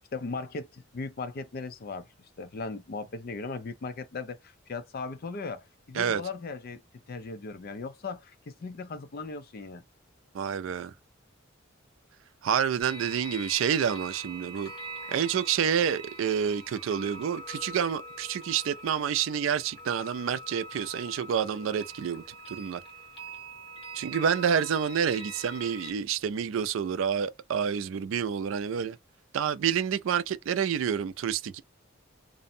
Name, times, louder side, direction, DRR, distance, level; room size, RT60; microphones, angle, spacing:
voice 1, 0.1-6.8 7.1-9.8, left 4 dB, 50° left, 0.4 m, -38 dB
voice 2, 10.3-10.9 12.4-14.7 15.1-22.8 23.9-29.0 29.3-31.6, right 8 dB, 75° right, 0.3 m, -28 dB
sound 1, 12.8-25.9, right 1 dB, 25° left, 1.3 m, -43 dB
2.6 x 2.0 x 2.6 m
head